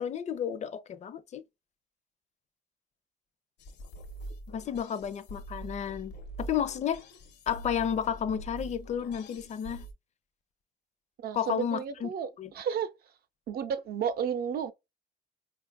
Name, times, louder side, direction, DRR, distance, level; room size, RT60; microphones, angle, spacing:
voice 1, 0.0-1.4 4.5-6.1 6.4-7.0 7.5-9.9 11.3-12.1 12.4-12.5, left 8 dB, 40° left, 0.5 m, -32 dB
sound 1, 3.6-9.9, right 1 dB, 85° left, 0.9 m, -44 dB
voice 2, 11.2-12.3 12.5-12.9 13.5-14.7, right 7 dB, 60° right, 0.6 m, -32 dB
4.9 x 2.3 x 2.3 m
cardioid pair, 120°, 17 cm